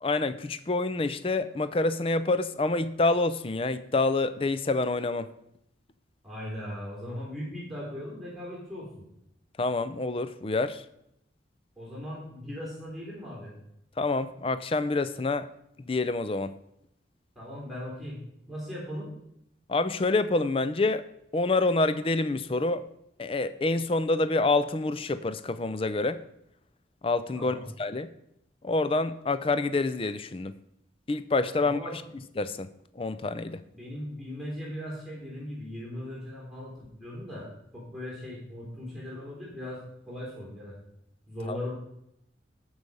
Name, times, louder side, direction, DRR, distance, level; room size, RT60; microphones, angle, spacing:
voice 1, 0.0-5.3 9.6-10.8 14.0-15.5 15.9-16.5 19.7-21.1 21.3-22.8 23.2-26.2 27.0-28.1 28.6-30.5 31.1-32.0 32.4-32.7 32.9-33.6 41.5-41.6, left 3 dB, 30° left, 12 dB, 0.5 m, -27 dB
voice 2, 6.2-9.0 11.8-13.6 17.3-19.1 27.3-27.7 31.6-31.9 33.7-40.7 41.3-41.7, left 1 dB, ahead, -5 dB, 3.3 m, -39 dB
13.5 x 4.8 x 5.4 m, 0.79 s
head